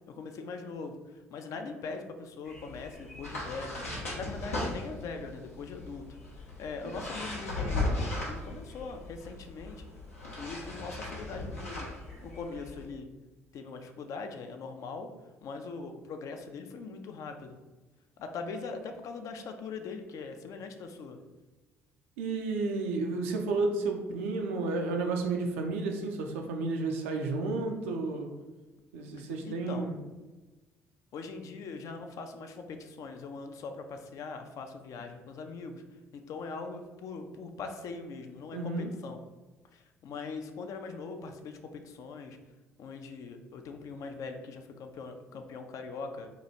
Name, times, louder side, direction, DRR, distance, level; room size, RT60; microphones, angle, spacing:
voice 1, 0.1-9.8 10.4-13.1 13.5-15.1 15.4-17.6 18.2-21.2 29.2-29.9 31.1-35.8 36.1-39.2 39.7-42.4 42.8-46.3, left 4 dB, 45° left, 6 dB, 0.4 m, -41 dB
sound 1, 2.4-12.9, left 2 dB, 80° left, 0.7 m, -37 dB
voice 2, 22.2-28.3 28.9-30.0 38.5-38.9, right 3 dB, 70° right, 2 dB, 0.4 m, -32 dB
2.9 x 2.3 x 4.1 m, 1.2 s
figure-of-eight pair, 50°, 7 cm